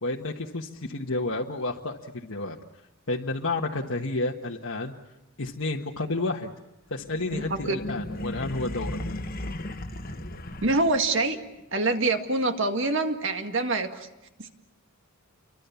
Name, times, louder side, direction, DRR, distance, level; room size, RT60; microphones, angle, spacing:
voice 1, 0.0-2.6 3.1-4.9 5.4-6.5 6.9-9.0, left 2 dB, 65° left, -1 dB, 1.5 m, -30 dB
sound 1, 7.0-11.2, left 1 dB, 40° left, 1.4 m, -35 dB
voice 2, 7.3-7.8 10.6-11.4 11.7-14.1 14.4-14.5, right 2 dB, 55° right, 6 dB, 1.9 m, -25 dB
30.0 x 24.0 x 7.1 m, 0.96 s
head